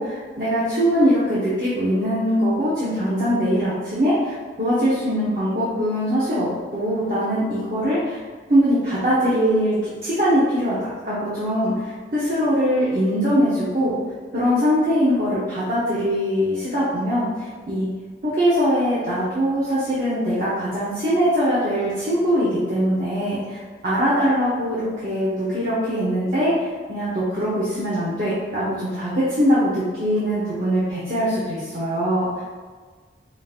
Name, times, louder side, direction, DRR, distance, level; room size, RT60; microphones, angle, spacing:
voice 1, 0.0-8.2 8.5-10.8 11.1-13.9 14.3-17.9 18.2-26.5 26.9-32.4, equal, 50° right, -10 dB, 0.8 m, -22 dB
5.0 x 2.7 x 2.4 m, 1.5 s
head